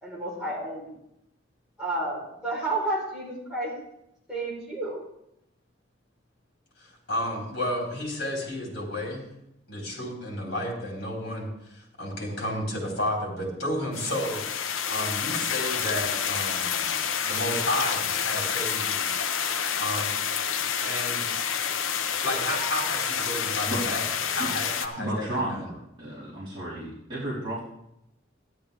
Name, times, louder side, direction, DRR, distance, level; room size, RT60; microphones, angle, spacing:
voice 1, 0.0-0.9 1.8-3.7 4.3-5.0, right 2 dB, 5° right, -7 dB, 4.2 m, -31 dB
voice 2, 6.8-9.3 9.7-14.4 14.9-16.8 17.2-19.1 19.8-20.2 20.8-21.2 22.2-24.0 24.3-25.7, left 1 dB, 55° left, -2 dB, 3.9 m, -32 dB
sound 1, 13.9-24.9, left 7 dB, 85° left, 0.7 m, -28 dB
voice 3, 25.0-25.7 26.0-27.6, right 1 dB, 25° right, -11 dB, 3.7 m, -32 dB
12.5 x 11.0 x 3.4 m, 0.82 s
head